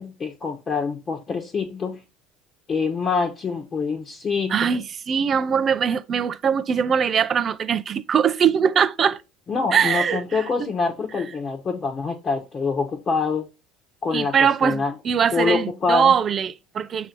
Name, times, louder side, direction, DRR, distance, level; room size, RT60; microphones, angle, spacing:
voice 1, 0.0-2.0 2.7-4.8 9.5-13.5 14.0-14.9 15.3-16.1, left 4 dB, 35° left, 1.2 m, -25 dB
voice 2, 4.5-9.2 9.7-10.2 14.1-17.1, right 7 dB, 40° right, 0.6 m, -21 dB
6.7 x 2.9 x 5.2 m
hypercardioid pair, 70°, 0 cm